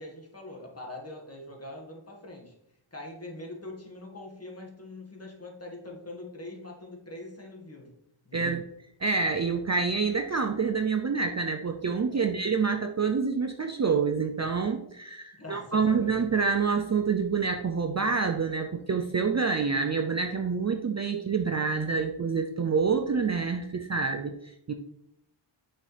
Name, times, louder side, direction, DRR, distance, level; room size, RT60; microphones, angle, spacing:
voice 1, 0.0-2.5 2.9-7.9 8.3-8.5 12.1-12.3 15.3-16.2, left 2 dB, 30° left, 0 dB, 1.8 m, -43 dB
voice 2, 8.3-8.6 9.0-24.7, right 5 dB, 35° right, 4 dB, 0.5 m, -27 dB
6.3 x 6.2 x 3.4 m, 0.78 s
wide cardioid pair, 90°, 50 cm